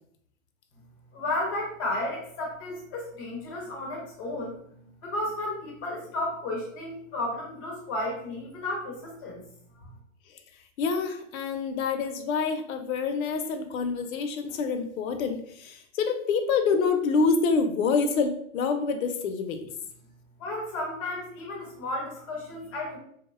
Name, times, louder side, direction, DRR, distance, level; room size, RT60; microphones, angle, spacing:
voice 1, 1.1-9.4 9.8-9.9 20.4-23.0, left 1 dB, 20° left, -2 dB, 0.4 m, -33 dB
voice 2, 10.8-19.6, left 5 dB, 80° left, 6 dB, 0.5 m, -27 dB
2.8 x 2.1 x 2.3 m, 0.66 s
hypercardioid pair, 145°, 40 cm